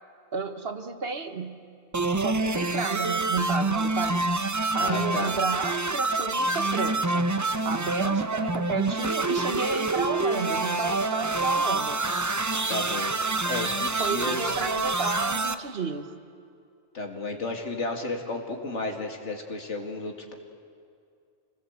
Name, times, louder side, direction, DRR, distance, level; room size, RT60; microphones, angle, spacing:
voice 1, 0.3-1.6 2.2-4.2 4.7-7.3 7.6-12.0 13.9-16.0, right 4 dB, 50° right, 8 dB, 1.3 m, -32 dB
sound 1, 1.9-15.5, right 3 dB, 20° right, 0.5 m, -27 dB
voice 2, 4.7-5.3 12.7-13.1 13.4-14.6 16.9-20.3, left 2 dB, 65° left, 3 dB, 2.5 m, -33 dB
26.5 x 19.0 x 8.1 m, 2.4 s
omnidirectional pair, 1.3 m